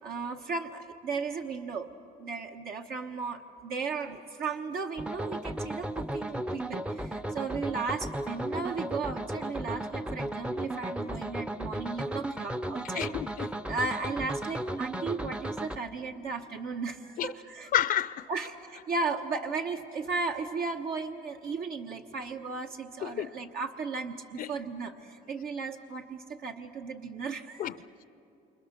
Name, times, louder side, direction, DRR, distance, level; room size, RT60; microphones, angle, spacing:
voice 1, 0.0-1.9 2.2-13.1 13.7-17.7 18.3-27.7, right 4 dB, 65° right, 1.2 m, -35 dB
sound 1, 5.0-15.8, right 1 dB, 5° right, 0.6 m, -35 dB
voice 2, 13.0-13.5 17.2-17.3 17.7-18.3 23.0-23.3 24.4-24.5 27.6-27.7, left 11 dB, 55° left, 0.6 m, -29 dB
28.0 x 25.5 x 6.8 m
cardioid pair, 110°, 17 cm